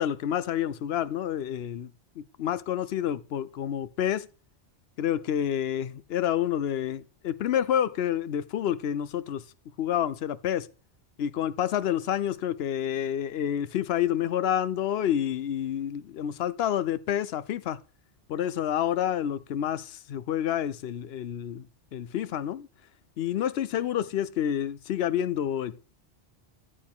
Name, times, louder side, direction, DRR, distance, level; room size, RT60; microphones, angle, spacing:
voice 1, 0.0-1.9 2.2-4.3 5.0-9.4 9.8-10.7 11.2-17.8 18.3-21.7 21.9-22.7 23.2-25.8, left 10 dB, 65° left, 0.8 m, -28 dB
14.0 x 4.8 x 3.6 m
omnidirectional pair, 1.2 m